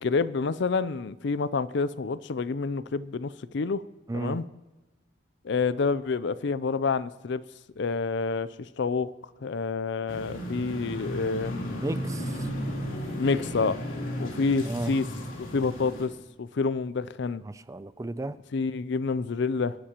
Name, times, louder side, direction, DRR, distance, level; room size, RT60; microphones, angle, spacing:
voice 1, 0.0-3.8 4.1-4.4 5.4-7.4 7.8-8.5 8.8-9.1 9.4-11.9 13.2-13.8 14.2-15.1 15.4-16.1 16.4-17.4 18.5-19.8, left 4 dB, 60° left, 16 dB, 0.5 m, -28 dB
voice 2, 4.1-4.4 11.8-12.5 14.7-14.9 17.4-18.4, right 2 dB, 15° right, 14 dB, 0.4 m, -34 dB
sound 1, 10.1-16.1, equal, 80° left, 3.4 m, -34 dB
27.5 x 11.5 x 3.0 m, 1.1 s
head